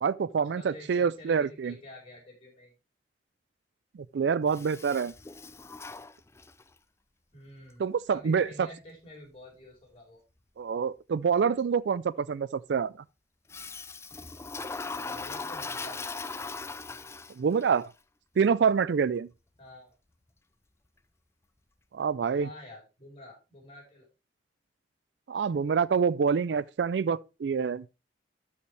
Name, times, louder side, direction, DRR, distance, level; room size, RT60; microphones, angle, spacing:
voice 1, 0.0-1.7 3.9-5.1 7.8-8.7 10.6-12.9 17.4-17.9 18.4-19.3 21.9-22.5 25.3-27.9, right 6 dB, 75° right, 0.4 m, -26 dB
voice 2, 0.5-2.7 7.3-10.2 14.9-16.1 19.6-20.0 22.3-24.0, left 1 dB, 35° left, 4.8 m, -49 dB
Toilet flush, 4.5-6.7 13.5-17.6, left 4 dB, 15° left, 0.4 m, -39 dB
12.5 x 5.7 x 3.3 m
head